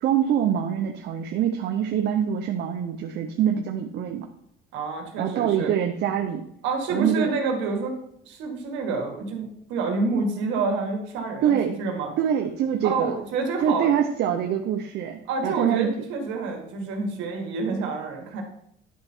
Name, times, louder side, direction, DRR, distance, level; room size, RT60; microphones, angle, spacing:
voice 1, 0.0-4.2 5.2-6.4 6.9-7.3 11.4-11.8 12.2-13.1 13.6-15.9, right 9 dB, 65° right, 4 dB, 0.7 m, -24 dB
voice 2, 4.7-5.7 6.6-7.9 8.2-12.1 12.8-13.9 15.3-18.4, right 4 dB, 85° right, 2 dB, 1.8 m, -28 dB
10.5 x 4.4 x 4.4 m, 0.71 s
cardioid pair, 110°, 19 cm